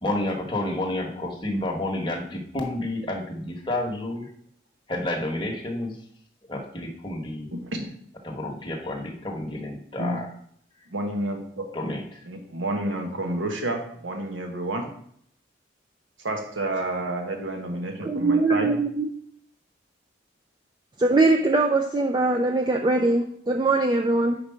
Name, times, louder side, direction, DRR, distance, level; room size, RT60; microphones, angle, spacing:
voice 1, 0.0-4.3 4.9-6.0 6.5-7.5 8.2-10.3 11.7-12.2, left 1 dB, 25° left, 1 dB, 1.1 m, -30 dB
voice 2, 7.5-7.9 10.0-10.2 10.9-11.7 12.3-14.9 16.2-18.7, right 1 dB, 80° right, 3 dB, 1.1 m, -30 dB
voice 3, 18.0-19.1 21.0-24.4, right 2 dB, 25° right, 3 dB, 0.3 m, -22 dB
4.9 x 4.7 x 5.6 m, 0.65 s
head